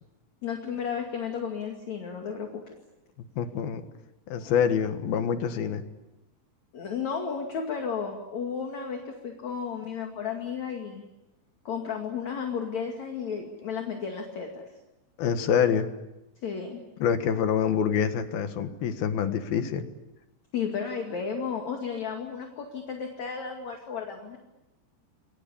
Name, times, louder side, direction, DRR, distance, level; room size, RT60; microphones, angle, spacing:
voice 1, 0.4-2.7 4.4-4.5 6.7-11.0 11.6-14.6 16.4-16.8 20.5-24.4, left 6 dB, 45° left, 2 dB, 3.3 m, -33 dB
voice 2, 3.4-3.8 4.3-5.8 15.2-15.9 17.0-19.9, left 7 dB, 70° left, 8 dB, 3.2 m, -26 dB
29.0 x 22.5 x 8.5 m, 0.95 s
omnidirectional pair, 4.8 m